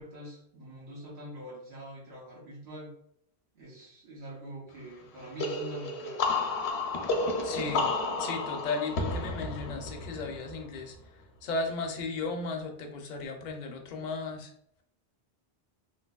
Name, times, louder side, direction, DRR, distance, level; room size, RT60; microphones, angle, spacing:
voice 1, 0.0-2.9 3.6-6.2, right 1 dB, 90° right, -6 dB, 1.2 m, -44 dB
sound 1, 5.4-10.9, left 3 dB, 80° left, 0.8 m, -31 dB
voice 2, 7.4-7.9 8.2-10.9 11.4-14.5, left 3 dB, 55° left, 3 dB, 0.6 m, -35 dB
3.2 x 2.8 x 2.3 m, 0.72 s
omnidirectional pair, 1.1 m